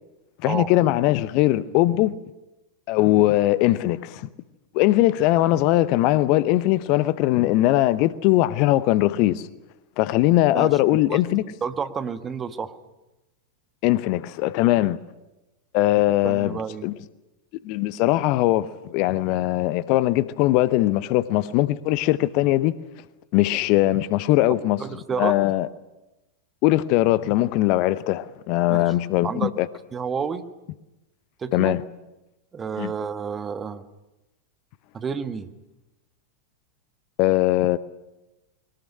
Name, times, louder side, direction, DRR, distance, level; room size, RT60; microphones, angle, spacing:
voice 1, 0.4-2.1 2.9-4.3 4.7-9.5 10.0-11.4 13.8-15.0 15.7-16.9 17.6-22.8 23.3-24.8 25.2-25.7 26.6-29.7 31.5-31.8 32.8-32.9 37.2-37.8, left 16 dB, 45° left, 0.8 m, -20 dB
voice 2, 11.6-12.8 16.2-16.8 24.8-25.4 28.7-28.8 29.2-29.5 29.9-30.4 31.4-31.8 32.5-33.8 34.9-35.5, right 6 dB, 20° right, 1.4 m, -30 dB
22.0 x 20.0 x 9.9 m
figure-of-eight pair, 90°, 0 cm